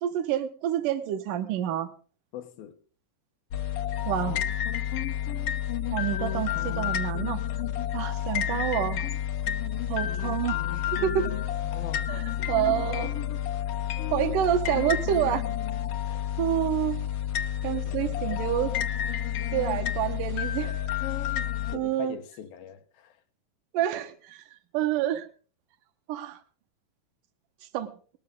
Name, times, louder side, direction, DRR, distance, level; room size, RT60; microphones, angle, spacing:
voice 1, 0.0-1.9 4.1-4.4 5.9-7.4 7.9-9.1 9.9-11.3 12.1-13.1 14.1-15.5 16.4-17.0 17.6-18.7 19.5-20.8 21.7-22.2 23.7-24.4 24.7-25.3 26.1-26.4 27.7-27.9, right 11 dB, 70° right, 2.8 m, -28 dB
voice 2, 2.3-2.8 11.6-12.1 12.4-13.2 16.1-16.3 21.7-23.2, left 10 dB, 85° left, 3.2 m, -42 dB
sound 1, 3.5-21.8, left 10 dB, 70° left, 1.4 m, -30 dB
19.5 x 14.0 x 3.8 m
omnidirectional pair, 4.2 m